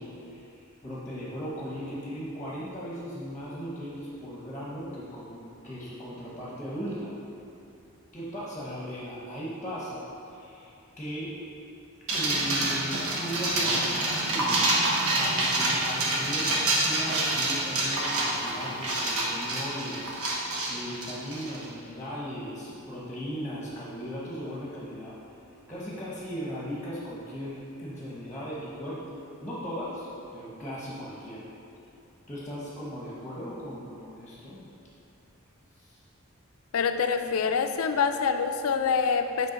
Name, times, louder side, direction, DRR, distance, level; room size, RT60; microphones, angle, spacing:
voice 1, 0.0-7.1 8.1-10.0 10.3-11.4 12.1-14.8 15.1-16.6 16.8-25.2 25.7-29.0 29.4-30.1 30.3-31.5 32.3-34.7 35.8-36.0, equal, 10° left, -6 dB, 1.0 m, -37 dB
sound 1, 12.1-21.6, right 2 dB, 85° right, 1.1 m, -27 dB
voice 2, 36.7-39.5, left 5 dB, 80° left, 7 dB, 0.4 m, -26 dB
8.4 x 3.3 x 5.2 m, 2.7 s
head